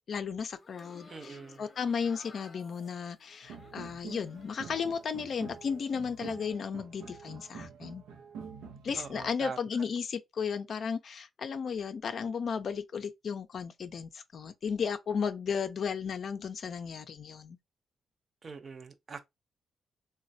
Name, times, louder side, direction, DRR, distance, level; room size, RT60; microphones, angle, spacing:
voice 1, 0.0-8.0 8.8-17.6, left 6 dB, 60° left, 0.4 m, -34 dB
sound 1, 0.6-5.0 5.3-6.1, left 3 dB, 40° left, 0.8 m, -56 dB
voice 2, 1.1-1.6 8.9-9.6 18.4-19.2, right 4 dB, 45° right, 0.6 m, -42 dB
sound 2, 3.4-9.3, right 6 dB, 90° right, 0.5 m, -47 dB
3.1 x 2.2 x 2.6 m
cardioid pair, 65°, 0 cm